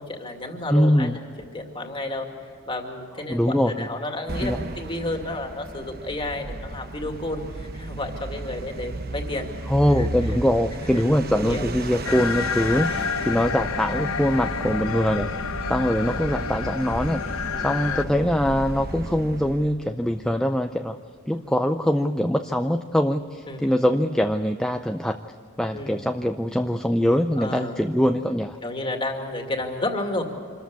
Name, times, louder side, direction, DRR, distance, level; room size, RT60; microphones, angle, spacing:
voice 1, 0.0-2.3 2.7-9.5 10.0-10.1 10.8-12.0 17.5-18.1 23.5-23.7 25.7-26.0 27.4-27.7 28.6-30.2, left 1 dB, 25° left, 3 dB, 2.3 m, -32 dB
voice 2, 0.7-1.2 3.3-3.9 4.4-4.7 9.7-15.3 15.7-17.2 17.6-21.0 21.3-25.2 25.6-28.6, equal, 5° left, 5 dB, 0.5 m, -23 dB
sound 1, 4.3-19.8, right 2 dB, 45° right, 1.0 m, -34 dB
sound 2, 12.0-18.0, left 7 dB, 75° left, 0.6 m, -30 dB
26.5 x 14.0 x 8.3 m, 2.3 s
head